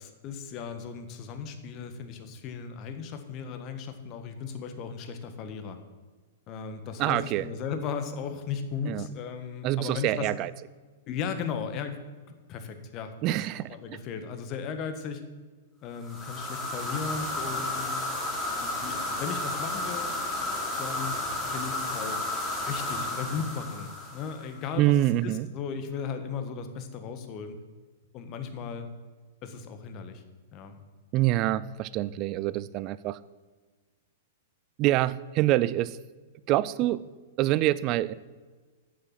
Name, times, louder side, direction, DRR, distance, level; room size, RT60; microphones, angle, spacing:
voice 1, 0.0-5.8 6.5-10.3 11.1-12.0 12.5-15.2 15.8-18.1 18.6-20.1 20.8-21.2 21.4-22.2 22.7-27.6 28.1-28.9 29.4-30.2 30.5-30.8, left 6 dB, 40° left, 8 dB, 1.4 m, -36 dB
voice 2, 7.0-7.5 8.9-9.1 9.6-10.5 13.2-14.0 24.8-25.5 31.1-33.2 34.8-36.0 36.5-37.0 37.4-38.1, right 15 dB, 40° right, 18 dB, 0.5 m, -26 dB
sound 1, 16.0-24.6, left 2 dB, 15° left, 3.1 m, -32 dB
9.4 x 7.0 x 7.6 m, 1.4 s
hypercardioid pair, 115°, 0 cm